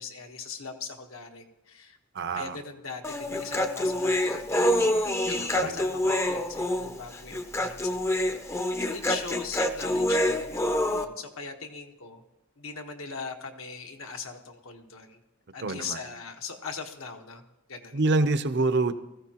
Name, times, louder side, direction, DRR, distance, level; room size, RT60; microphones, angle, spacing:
voice 1, 0.0-2.0 2.3-12.2 12.6-15.2 15.5-18.0, left 5 dB, 75° left, 4 dB, 1.4 m, -40 dB
voice 2, 2.1-2.6 5.3-5.8 15.6-16.0 17.9-18.9, right 3 dB, 55° right, 10 dB, 0.8 m, -26 dB
Human voice, 3.0-11.1, left 1 dB, 15° left, 0.6 m, -26 dB
20.5 x 15.0 x 3.0 m, 0.93 s
head